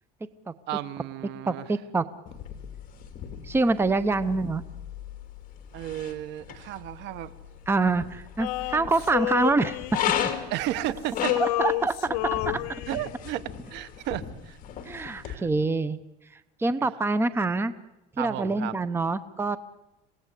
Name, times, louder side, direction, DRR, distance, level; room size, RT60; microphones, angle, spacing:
voice 1, 0.7-1.7 5.7-7.3 10.5-11.4 12.9-14.6 15.2-15.5 18.2-18.8, right 13 dB, 60° right, 16 dB, 1.2 m, -33 dB
voice 2, 1.5-2.1 3.4-4.6 7.7-9.8 10.2-10.3 11.4-12.2 14.9-16.0 16.6-17.7 18.2-19.6, right 3 dB, 10° right, 14 dB, 0.8 m, -25 dB
sound 1, 2.3-15.3, left 9 dB, 40° left, 3.0 m, -36 dB
Male singing, 8.4-10.8 11.1-13.3, left 19 dB, 90° left, 0.8 m, -30 dB
27.0 x 17.5 x 8.3 m, 0.97 s
cardioid pair, 135°, 20 cm